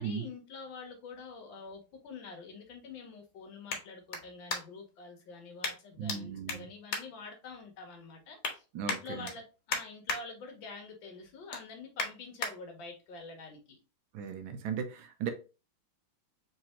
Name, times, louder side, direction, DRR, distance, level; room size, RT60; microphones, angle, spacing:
voice 1, 0.0-13.8, left 4 dB, 70° left, 1.6 m, -47 dB
sound 1, 0.8-5.0 5.6-6.2 6.4-7.8 8.1-8.5 8.9-10.2 10.6-10.9 11.2-12.5 13.1-13.2, left 4 dB, 85° left, 1.9 m, -38 dB
voice 2, 6.0-6.7 8.7-9.3 14.1-15.3, right 7 dB, 75° right, 1.4 m, -37 dB
3.9 x 3.3 x 2.9 m
omnidirectional pair, 2.3 m